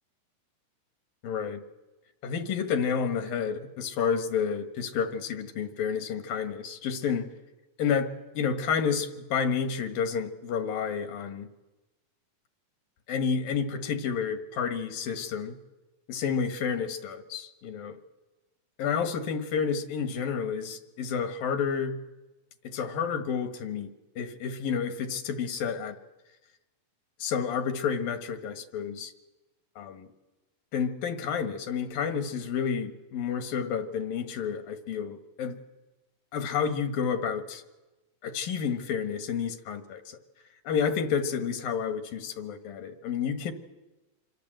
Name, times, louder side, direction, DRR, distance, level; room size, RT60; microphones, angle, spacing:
voice 1, 1.2-1.6 2.2-7.3 7.8-11.5 13.1-15.5 16.1-18.0 18.8-22.0 22.6-26.0 27.2-29.1 29.8-30.1 30.7-35.6 36.3-37.6 38.2-40.2 40.6-43.5, left 6 dB, 75° left, 8 dB, 3.1 m, -30 dB
27.0 x 24.0 x 7.8 m, 1.1 s
omnidirectional pair, 4.1 m